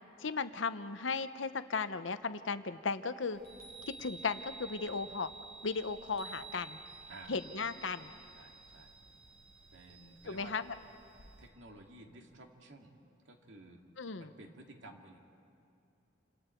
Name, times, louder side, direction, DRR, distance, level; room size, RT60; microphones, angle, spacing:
voice 1, 0.2-3.4 3.8-5.3 5.6-6.8 7.3-8.1 10.3-10.6 14.0-14.3, left 4 dB, 85° left, 11 dB, 0.9 m, -36 dB
Chime, 3.4-11.5, right 4 dB, 55° right, 5.2 m, -52 dB
voice 2, 7.1-7.7 8.4-8.9 9.7-10.5 11.4-12.9 13.2-13.8 14.2-15.2, right 2 dB, 75° right, 2 dB, 2.4 m, -53 dB
29.5 x 27.0 x 4.6 m, 2.7 s
head